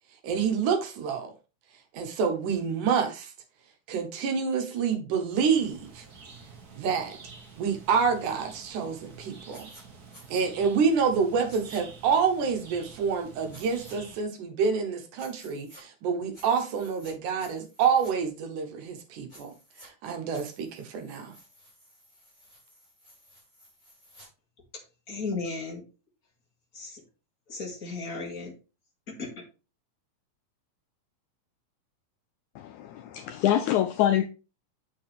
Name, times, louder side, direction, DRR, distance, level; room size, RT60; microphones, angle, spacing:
voice 1, 0.2-1.3 1.9-3.3 3.9-6.0 6.8-7.2 7.6-9.7 10.3-19.5 19.8-21.3, right 6 dB, 70° right, 2.4 m, -27 dB
sound 1, 5.4-14.2, right 5 dB, 40° right, 1.4 m, -49 dB
sound 2, 9.5-9.8 10.1-10.5 11.5-11.8 13.5-14.0 15.2-15.8 16.3-17.1 17.4-18.1 19.3-19.9 20.3-24.3, equal, 10° left, 4.8 m, -54 dB
voice 2, 25.1-25.9 26.7-27.0 27.5-28.6 29.1-29.4, left 3 dB, 30° left, 2.2 m, -35 dB
voice 3, 32.6-34.2, left 11 dB, 80° left, 1.7 m, -25 dB
8.4 x 5.9 x 3.4 m
omnidirectional pair, 3.9 m